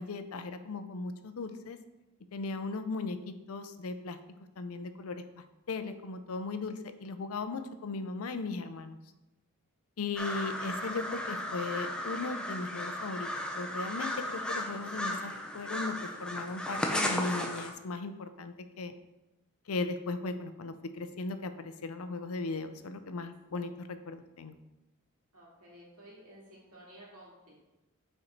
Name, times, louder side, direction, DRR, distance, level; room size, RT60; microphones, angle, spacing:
voice 1, 0.0-1.8 2.3-4.2 4.6-5.2 5.7-9.0 10.0-18.9 19.7-24.5, left 3 dB, 75° left, 10 dB, 0.5 m, -37 dB
sound 1, 10.2-17.7, left 1 dB, 5° left, 0.5 m, -35 dB
voice 2, 25.3-27.5, right 1 dB, 90° right, -4 dB, 2.5 m, -53 dB
6.4 x 4.5 x 4.5 m, 0.99 s
head